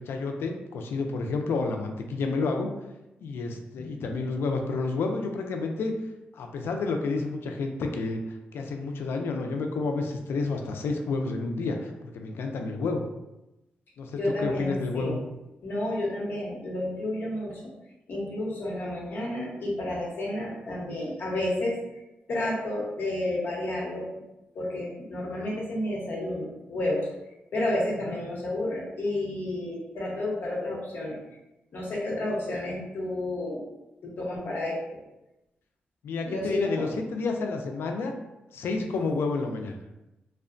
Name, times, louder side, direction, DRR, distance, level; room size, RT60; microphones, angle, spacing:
voice 1, 0.1-2.7 3.2-5.9 6.3-8.2 8.5-13.0 14.0-15.2 28.1-28.2 36.0-38.1 38.5-39.8, left 3 dB, 85° left, 4 dB, 0.3 m, -30 dB
voice 2, 3.8-4.1 14.2-15.2 15.6-17.6 18.1-21.8 22.3-24.1 24.5-27.1 27.5-31.2 31.7-33.6 34.0-34.8 36.2-36.9 39.0-39.1, left 1 dB, 65° left, -3 dB, 0.8 m, -31 dB
2.8 x 2.1 x 2.5 m, 0.95 s
cardioid pair, 100°, 4 cm